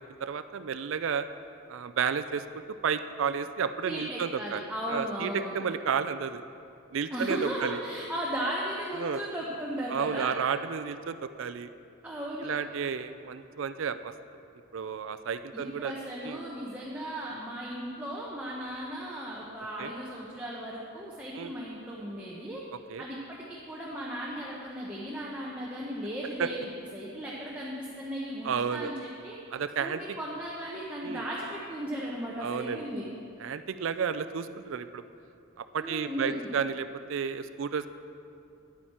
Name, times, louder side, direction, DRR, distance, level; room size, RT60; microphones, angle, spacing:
voice 1, 0.2-1.3 1.7-2.4 2.8-4.6 4.9-6.4 6.9-7.8 9.0-9.2 9.9-11.7 12.4-14.1 14.7-15.9 16.2-16.4 19.8-19.9 21.4-21.5 22.9-23.0 26.4-26.5 28.4-28.9 29.5-30.0 31.0-31.2 32.4-32.8 33.4-35.0 35.6-37.9, right 6 dB, 65° right, 11 dB, 0.4 m, -32 dB
voice 2, 3.9-5.6 7.1-10.4 12.0-12.6 15.5-22.6 23.0-29.4 29.8-33.1 35.8-36.4, right 1 dB, 5° right, -5 dB, 0.9 m, -36 dB
10.5 x 9.1 x 4.3 m, 2.6 s
head